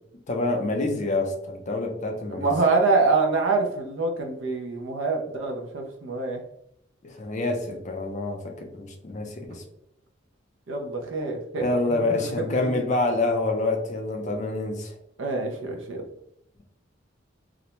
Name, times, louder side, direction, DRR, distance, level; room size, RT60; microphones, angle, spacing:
voice 1, 0.3-2.5 7.0-9.6 11.6-14.9, left 2 dB, 40° left, 3 dB, 0.4 m, -27 dB
voice 2, 2.3-6.4 10.7-12.7 15.2-16.1, right 3 dB, 80° right, 2 dB, 0.5 m, -26 dB
2.4 x 2.1 x 2.9 m, 0.79 s
head